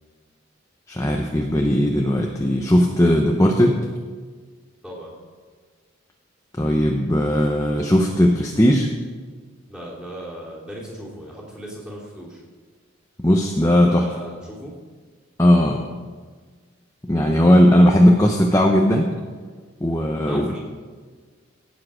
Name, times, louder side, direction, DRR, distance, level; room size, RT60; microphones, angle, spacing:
voice 1, 0.9-3.8 6.6-8.9 13.2-14.1 15.4-15.8 17.1-19.1 19.8-20.5, equal, 15° left, 1 dB, 0.7 m, -17 dB
voice 2, 4.8-5.1 9.7-12.4 13.9-14.8 19.9-20.6, equal, 5° right, -5 dB, 3.0 m, -37 dB
17.0 x 7.4 x 5.0 m, 1.5 s
head